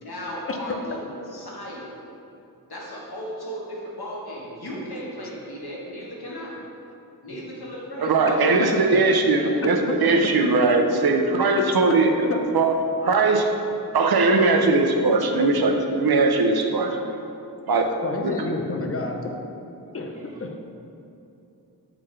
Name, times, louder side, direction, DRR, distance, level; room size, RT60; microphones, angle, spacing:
voice 1, 0.0-2.0 2.7-6.6 7.2-9.7, equal, 75° left, -5 dB, 1.3 m, -36 dB
voice 2, 8.0-12.1 12.5-13.5 13.9-17.1 17.7-18.0 18.2-18.3, right 3 dB, 70° right, 4 dB, 0.6 m, -20 dB
voice 3, 9.6-10.2 11.5-11.6 11.9-12.4 18.0-19.3 19.9-20.6, left 3 dB, 35° left, 3 dB, 0.6 m, -29 dB
7.6 x 3.9 x 3.2 m, 2.7 s
wide cardioid pair, 60°, 38 cm